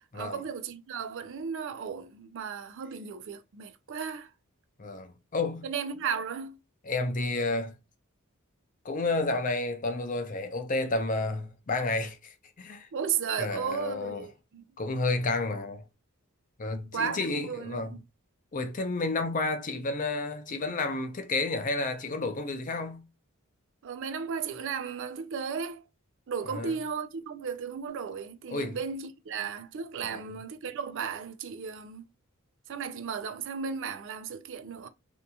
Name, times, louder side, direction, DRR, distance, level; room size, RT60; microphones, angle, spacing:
voice 1, 0.1-4.3 5.6-6.6 12.9-14.6 16.9-18.0 23.8-25.8 26.3-32.1 32.7-34.9, right 6 dB, 55° right, 0.4 m, -35 dB
voice 2, 4.8-5.7 6.8-7.7 8.8-12.9 13.4-14.3 14.8-15.8 16.6-18.0 18.5-23.1 26.5-26.7 28.5-28.8 30.1-30.2, left 3 dB, 35° left, 0.5 m, -31 dB
2.8 x 2.5 x 2.3 m
head